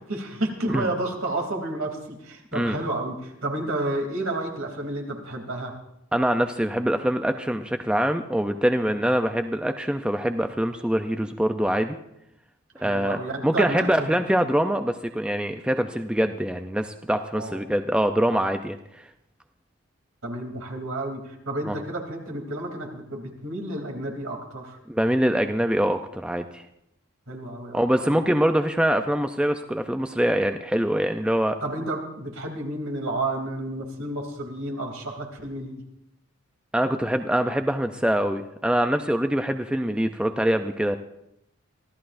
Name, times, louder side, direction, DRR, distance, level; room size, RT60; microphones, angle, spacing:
voice 1, 0.1-5.7 12.8-14.1 17.3-17.6 20.2-24.8 27.3-28.3 31.6-35.8, right 2 dB, 70° right, 1 dB, 3.0 m, -31 dB
voice 2, 6.1-12.0 12.8-19.0 21.7-21.8 24.9-26.6 27.7-31.6 36.7-41.0, equal, 5° right, 6 dB, 0.5 m, -24 dB
25.0 x 15.0 x 2.6 m, 0.80 s
head